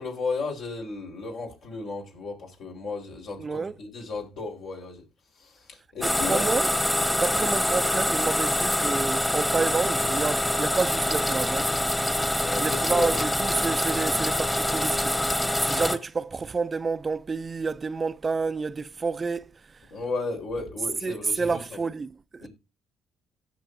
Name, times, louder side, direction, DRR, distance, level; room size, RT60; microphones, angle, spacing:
voice 1, 0.0-5.0 5.4-6.4 12.4-13.2 19.9-21.8 22.4-22.5, left 3 dB, 70° left, 4.5 m, -34 dB
voice 2, 3.4-3.8 6.0-6.7 7.2-11.7 12.6-19.9 21.0-22.5, right 4 dB, 35° right, 0.5 m, -29 dB
sound 1, 6.0-16.0, left 1 dB, 10° left, 1.4 m, -25 dB
16.5 x 6.0 x 2.7 m
supercardioid pair, 60°, 0 cm